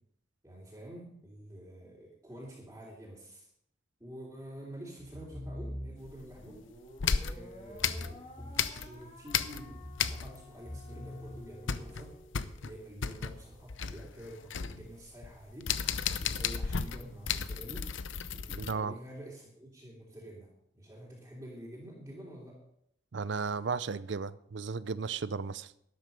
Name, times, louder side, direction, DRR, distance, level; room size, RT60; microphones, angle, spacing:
voice 1, 0.4-3.5 4.0-6.6 7.3-12.1 12.6-17.9 18.3-20.5 20.7-22.6, equal, 15° right, -7 dB, 2.9 m, -48 dB
sound 1, 5.0-6.3 7.6-9.1 9.6-12.1, left 1 dB, 5° left, 3.2 m, -44 dB
sound 2, 6.0-6.6 7.0-9.0 9.3-10.6 10.8-10.9 11.3-18.7, left 7 dB, 75° left, 0.7 m, -34 dB
sound 3, 6.4-12.9, left 1 dB, 30° left, 2.4 m, -54 dB
voice 2, 18.6-19.0 23.1-25.7, right 5 dB, 65° right, 17 dB, 0.5 m, -34 dB
12.5 x 10.5 x 5.3 m, 0.72 s
head